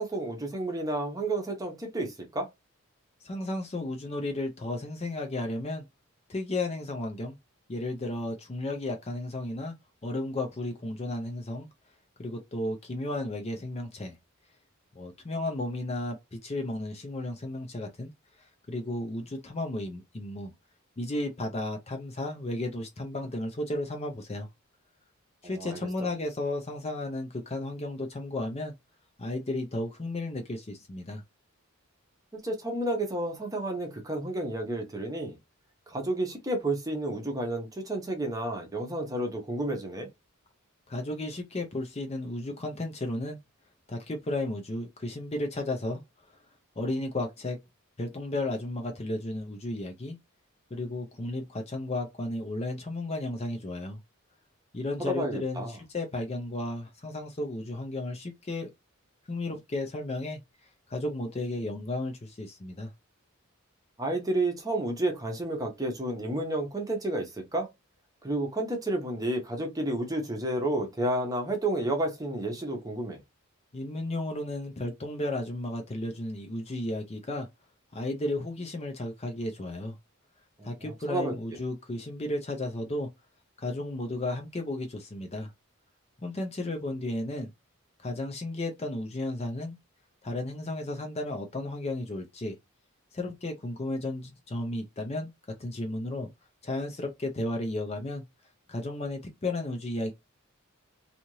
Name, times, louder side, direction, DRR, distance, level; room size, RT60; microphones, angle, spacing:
voice 1, 0.0-2.5 25.4-25.8 32.3-35.4 35.9-40.1 55.0-55.8 64.0-67.7 68.2-73.2 80.6-81.3, right 1 dB, 15° right, 0.7 m, -31 dB
voice 2, 3.2-5.8 6.3-7.4 7.7-9.8 10.0-11.7 12.2-14.2 14.9-18.1 18.4-20.5 21.0-24.5 25.4-28.7 29.2-31.2 40.9-43.4 43.9-46.0 46.3-46.4 46.8-47.6 48.0-50.2 50.7-54.0 54.7-58.7 59.3-60.4 60.9-62.9 73.7-77.5 77.9-80.0 80.6-83.1 83.6-85.5 86.2-87.5 88.0-89.8 90.2-92.5 93.1-95.3 95.6-96.3 96.6-98.2 98.7-100.1, left 2 dB, 30° left, 0.5 m, -33 dB
2.7 x 2.5 x 3.0 m
head